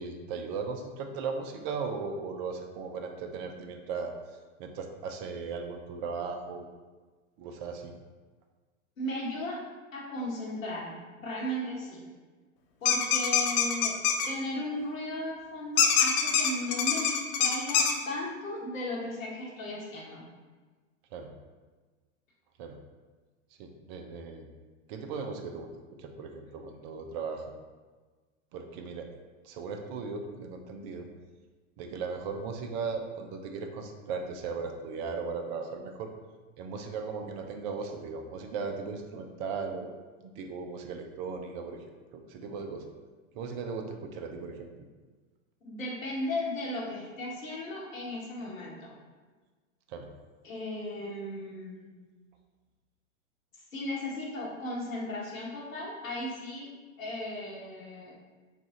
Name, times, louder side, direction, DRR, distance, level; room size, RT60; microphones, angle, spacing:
voice 1, 0.0-4.1 4.6-6.7 7.4-7.9 21.1-21.3 22.6-22.7 23.6-24.5 24.9-25.7 26.0-27.5 28.5-29.1 29.4-31.1 31.8-36.1 36.6-39.9 40.2-41.8 42.1-42.8 43.3-44.7 49.9-50.1, right 5 dB, 40° right, 4 dB, 0.6 m, -37 dB
voice 2, 9.0-9.6 9.9-12.1 12.8-14.0 14.3-20.2 45.6-48.9 50.4-52.0 53.7-56.7 57.0-58.1, left 1 dB, 80° left, -4 dB, 1.4 m, -36 dB
sound 1, 12.8-14.3 15.8-17.9, left 7 dB, 35° left, 0.4 m, -24 dB
4.7 x 2.4 x 3.8 m, 1.4 s
hypercardioid pair, 100°, 39 cm